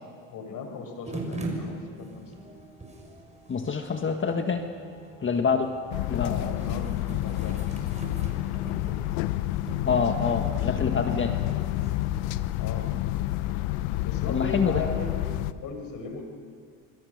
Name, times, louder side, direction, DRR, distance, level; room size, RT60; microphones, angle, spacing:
voice 1, 0.3-2.3 6.1-6.9 7.2-7.9 12.6-12.9 14.0-15.3 15.6-16.2, left 4 dB, 55° left, 5 dB, 5.5 m, -37 dB
sound 1, 1.0-12.4, right 2 dB, 15° right, 6.1 m, -42 dB
voice 2, 3.5-4.6 5.2-5.7 6.1-6.4 9.8-11.4 14.3-14.8, left 5 dB, 30° left, 5 dB, 1.7 m, -26 dB
sound 2, 5.9-15.5, left 15 dB, 80° left, 0.9 m, -29 dB
26.0 x 25.0 x 6.7 m, 2.1 s
supercardioid pair, 95°, 40 cm